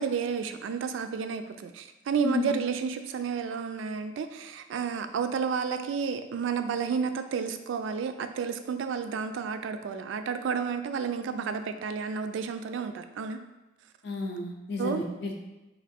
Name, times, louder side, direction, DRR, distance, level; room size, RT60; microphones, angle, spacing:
voice 1, 0.0-13.4 14.8-15.0, right 6 dB, 85° right, 8 dB, 0.3 m, -31 dB
voice 2, 14.0-15.3, left 2 dB, 60° left, 2 dB, 0.6 m, -31 dB
3.0 x 2.7 x 4.3 m, 1.0 s
head